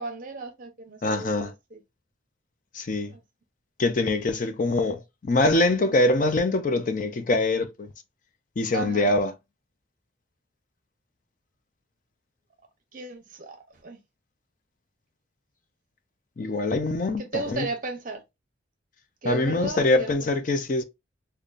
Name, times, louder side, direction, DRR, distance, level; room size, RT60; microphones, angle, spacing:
voice 1, 0.0-1.8 3.0-3.2 8.7-9.1 12.9-14.0 17.2-18.2 19.2-20.1, right 2 dB, 45° right, 0.8 m, -35 dB
voice 2, 1.0-1.5 2.7-3.1 3.8-7.9 8.6-9.3 16.4-17.7 19.2-20.8, left 2 dB, 40° left, 0.4 m, -24 dB
5.1 x 2.2 x 2.4 m
head